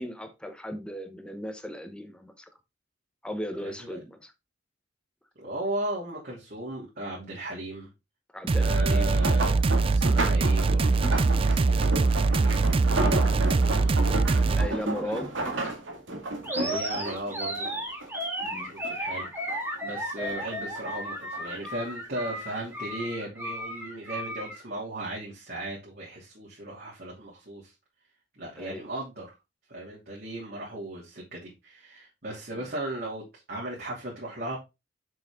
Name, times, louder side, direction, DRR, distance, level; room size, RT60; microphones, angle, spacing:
voice 1, 0.0-2.5 3.2-4.3 8.3-9.1 13.3-13.8 14.4-15.3 18.4-18.7 28.6-28.8 32.5-32.7, equal, 5° left, 1.1 m, -37 dB
voice 2, 3.6-4.0 5.4-7.9 8.6-9.6 9.9-12.5 13.2-14.6 15.0-15.2 16.5-17.7 18.6-27.7 28.4-29.3 29.7-34.6, right 1 dB, 55° right, 3.0 m, -37 dB
sound 1, 8.5-14.7, right 3 dB, 30° right, 0.3 m, -23 dB
sound 2, 8.9-18.5 18.8-19.8 20.2-21.5 22.3-22.6 23.0-23.1, right 2 dB, 85° right, 2.2 m, -33 dB
Animal, 16.4-24.6, equal, 10° right, 2.7 m, -34 dB
7.2 x 6.3 x 3.7 m
head